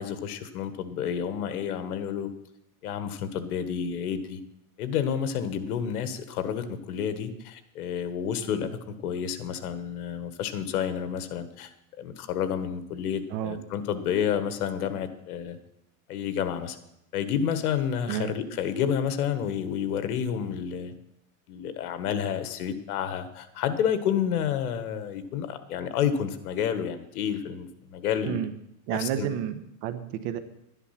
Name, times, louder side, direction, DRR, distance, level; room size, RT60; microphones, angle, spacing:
voice 1, 0.0-2.3 2.8-4.4 4.8-11.7 12.0-15.6 16.1-16.8 17.1-20.9 21.5-28.4 28.9-29.3, left 8 dB, 75° left, 10 dB, 1.5 m, -30 dB
voice 2, 18.1-18.4 28.2-28.5 28.9-30.4, right 10 dB, 45° right, 11 dB, 1.1 m, -31 dB
11.5 x 10.0 x 5.8 m, 0.79 s
supercardioid pair, 140°, 46 cm